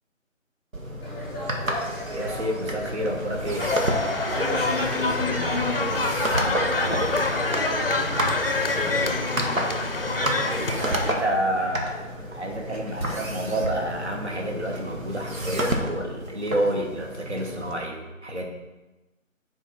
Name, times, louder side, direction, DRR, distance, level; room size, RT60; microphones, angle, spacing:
sound 1, 0.7-17.7, right 1 dB, 85° right, 1.5 m, -32 dB
sound 2, 1.0-17.2, left 1 dB, 20° right, 1.0 m, -38 dB
voice 1, 2.1-3.7 6.3-8.3 8.6-9.6 10.5-18.4, right 1 dB, 55° right, 1 dB, 1.4 m, -30 dB
sound 3, 3.6-11.1, left 2 dB, 45° left, 0.5 m, -26 dB
voice 2, 4.3-6.2 9.1-9.8 10.3-11.0, left 3 dB, 35° right, -6 dB, 2.6 m, -32 dB
8.3 x 4.5 x 4.2 m, 1.1 s
figure-of-eight pair, 165°, 40 cm